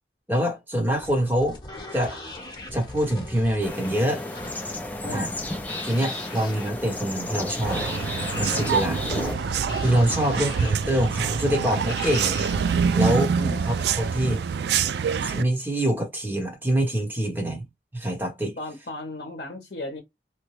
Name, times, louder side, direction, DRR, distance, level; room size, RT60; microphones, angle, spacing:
voice 1, 0.3-1.6 1.9-2.2 2.7-4.2 5.1-5.3 5.8-7.9 8.3-9.0 9.8-12.4 12.9-13.3 13.6-14.4 15.2-17.6 17.9-18.6, right 1 dB, 10° right, 1.1 m, -25 dB
sound 1, 0.9-12.8, left 2 dB, 25° left, 1.1 m, -39 dB
sound 2, 3.6-9.3, left 2 dB, 10° left, 0.5 m, -33 dB
sound 3, 7.6-15.4, right 6 dB, 70° right, 0.3 m, -26 dB
voice 2, 10.1-10.5 13.4-13.7 18.6-20.0, left 2 dB, 60° left, 0.8 m, -36 dB
3.0 x 2.2 x 3.1 m
head